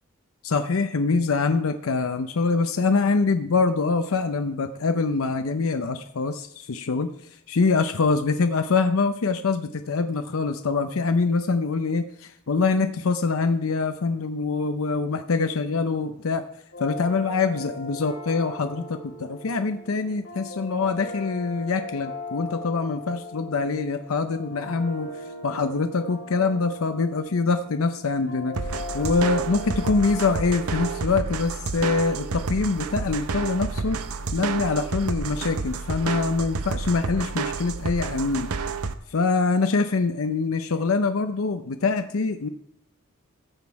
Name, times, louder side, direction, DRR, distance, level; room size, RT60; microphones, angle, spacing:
voice 1, 0.4-7.1 7.5-16.4 16.8-25.1 25.4-28.5 28.9-34.0 34.3-38.5 39.1-42.5, left 4 dB, 70° left, 8 dB, 0.6 m, -24 dB
sound 1, 16.7-31.0, left 2 dB, 85° left, 3.7 m, -39 dB
sound 2, 28.5-38.9, right 4 dB, 85° right, 0.7 m, -30 dB
14.0 x 6.2 x 4.7 m, 0.76 s
head